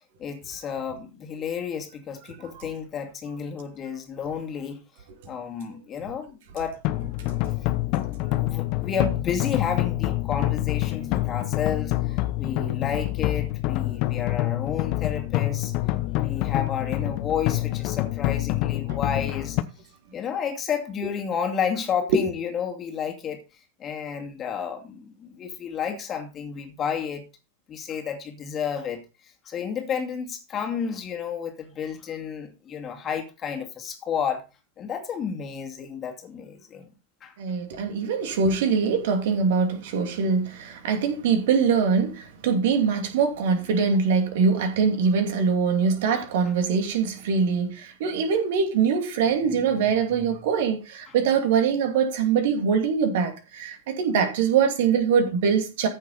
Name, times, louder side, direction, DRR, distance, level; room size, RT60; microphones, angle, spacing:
voice 1, 0.2-4.8 5.3-6.8 7.2-7.3 8.2-15.7 16.1-19.6 20.1-23.4 23.8-27.3 27.7-29.0 29.5-34.4 34.8-36.8 37.2-37.3 46.1-46.2 49.5-49.8 50.1-50.4 51.1-51.2, left 7 dB, 25° left, 2.4 m, -31 dB
sound 1, 6.8-19.6, left 18 dB, 45° left, 0.9 m, -26 dB
voice 2, 37.4-55.9, right 6 dB, 55° right, 2.7 m, -23 dB
14.5 x 6.5 x 4.1 m
figure-of-eight pair, 90°, 0 cm